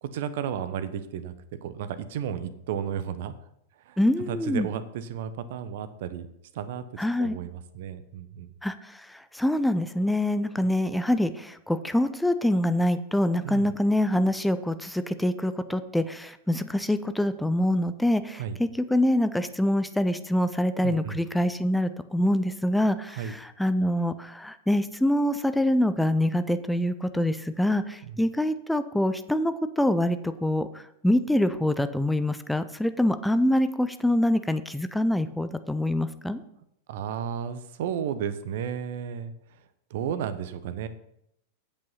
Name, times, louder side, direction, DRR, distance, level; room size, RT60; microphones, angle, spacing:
voice 1, 0.0-1.3 1.6-3.3 3.9-4.0 4.3-6.3 6.5-6.8 7.2-8.5 13.4-13.7 18.4-18.6 20.8-21.2 23.1-23.3 28.1-28.2 36.9-39.3 39.9-40.9, right 8 dB, 55° right, 12 dB, 0.9 m, -33 dB
voice 2, 4.0-4.7 7.0-7.4 8.6-30.7 31.0-36.4, left 1 dB, 5° left, 11 dB, 0.7 m, -25 dB
8.9 x 7.7 x 5.6 m, 0.76 s
figure-of-eight pair, 90°, 0 cm